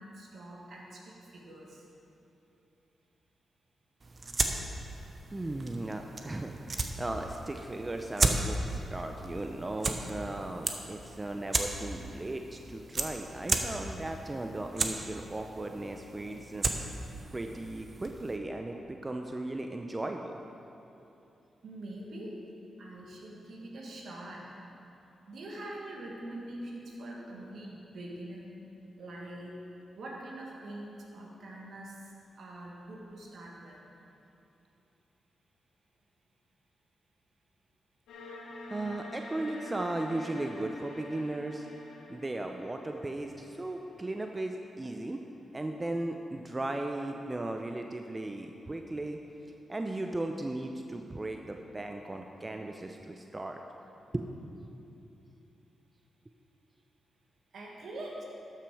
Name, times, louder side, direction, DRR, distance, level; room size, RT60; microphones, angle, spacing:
voice 1, 0.0-1.9 21.6-22.4 22.8-24.5 25.3-28.5 29.0-29.6 30.0-33.9 57.5-58.2, right 1 dB, 70° right, -2 dB, 1.8 m, -44 dB
sound 1, 4.0-18.4, right 3 dB, 45° right, 0.9 m, -35 dB
voice 2, 5.3-16.7 17.3-20.4 38.7-41.7 42.1-45.2 45.5-49.2 49.5-53.6 54.1-54.3, right 2 dB, 25° right, 4 dB, 0.6 m, -36 dB
sound 2, 38.1-45.0, left 1 dB, 80° left, 1.4 m, -47 dB
12.5 x 6.2 x 4.9 m, 2.9 s
supercardioid pair, 40°, 0 cm